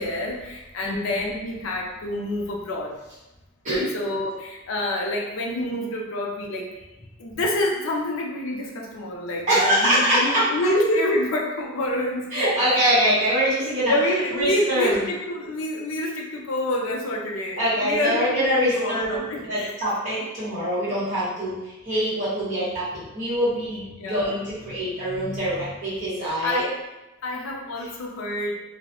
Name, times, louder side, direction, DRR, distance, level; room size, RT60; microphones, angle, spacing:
voice 1, 0.0-2.9 3.9-6.7 7.2-12.8 13.9-19.7 21.9-22.0 24.0-24.4 24.7-25.6 26.2-26.7 27.2-28.6, left 1 dB, 70° left, -1 dB, 0.4 m, -27 dB
voice 2, 0.8-1.1 3.6-3.9 9.5-10.5 12.3-13.9 14.3-15.0 17.6-26.6, equal, 35° right, -10 dB, 1.0 m, -24 dB
2.3 x 2.0 x 2.9 m, 1.0 s
head